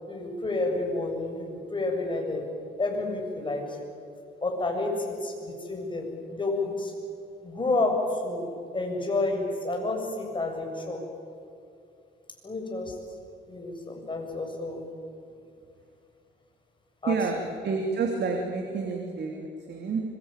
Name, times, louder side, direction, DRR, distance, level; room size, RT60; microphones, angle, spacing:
voice 1, 0.1-2.4 2.8-3.8 4.4-6.9 7.4-8.4 8.7-11.0 12.4-13.0 13.5-14.8 17.0-17.5, left 2 dB, 25° left, 2 dB, 7.4 m, -30 dB
voice 2, 17.1-17.4 17.6-20.0, right 4 dB, 60° right, 2 dB, 3.3 m, -29 dB
25.0 x 23.5 x 9.1 m, 2.5 s
cardioid pair, 90°, 20 cm